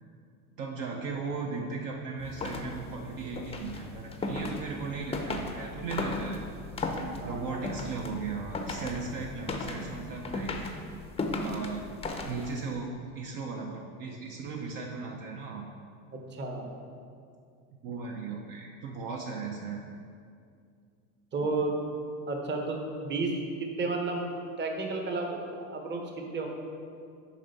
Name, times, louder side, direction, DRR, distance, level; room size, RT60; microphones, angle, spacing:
voice 1, 0.6-6.4 7.2-10.5 11.4-11.8 12.3-12.9 13.1-15.7 17.8-19.8 21.4-21.5, right 4 dB, 50° right, 1 dB, 0.8 m, -37 dB
sound 1, 2.2-12.7, left 2 dB, 15° left, 0.6 m, -36 dB
voice 2, 7.2-7.7 16.1-16.7 21.3-21.7 22.3-23.3 23.6-24.3 24.6-26.5, right 3 dB, 25° right, 2 dB, 1.0 m, -32 dB
7.4 x 5.2 x 4.1 m, 2.3 s
supercardioid pair, 110°, 43 cm